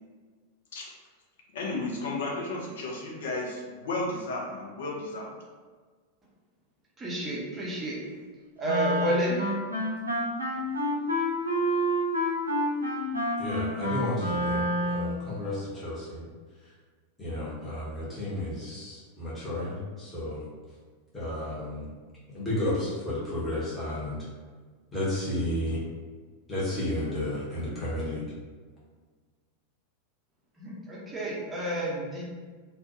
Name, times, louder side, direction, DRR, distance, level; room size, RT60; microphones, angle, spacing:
voice 1, 1.5-5.3, left 2 dB, 60° left, -2 dB, 0.5 m, -33 dB
voice 2, 7.0-8.0 8.6-9.4 30.6-32.2, right 1 dB, 15° right, -5 dB, 0.6 m, -30 dB
Wind instrument woodwind instrument, 8.6-15.3, equal, 80° right, 0.4 m, -28 dB
voice 3, 13.4-16.2 16.6-16.7 17.2-20.5 21.1-21.9 22.3-24.2 24.9-25.8 26.5-28.3, left 1 dB, 10° left, -10 dB, 0.9 m, -32 dB
2.2 x 2.1 x 2.7 m, 1.5 s
figure-of-eight pair, 90°, 0 cm